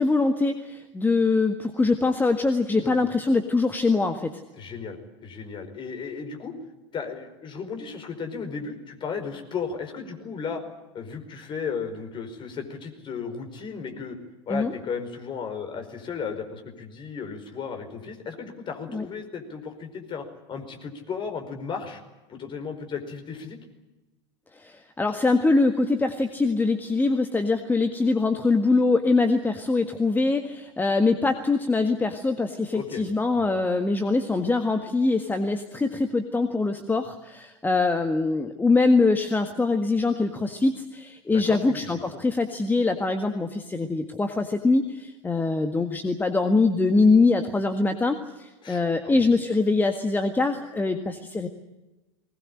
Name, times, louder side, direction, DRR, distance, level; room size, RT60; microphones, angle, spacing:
voice 1, 0.0-4.4 14.5-14.7 18.9-19.1 24.5-51.5, left 3 dB, 10° left, 6 dB, 1.7 m, -23 dB
voice 2, 4.6-6.5 6.9-10.6 10.9-14.2 14.5-22.0 22.3-23.6 32.7-33.0 33.3-33.5 41.3-41.9 42.1-42.2 48.6-49.2, left 5 dB, 30° left, 5 dB, 4.9 m, -35 dB
21.0 x 19.5 x 10.0 m, 1.0 s
figure-of-eight pair, 85°, 15 cm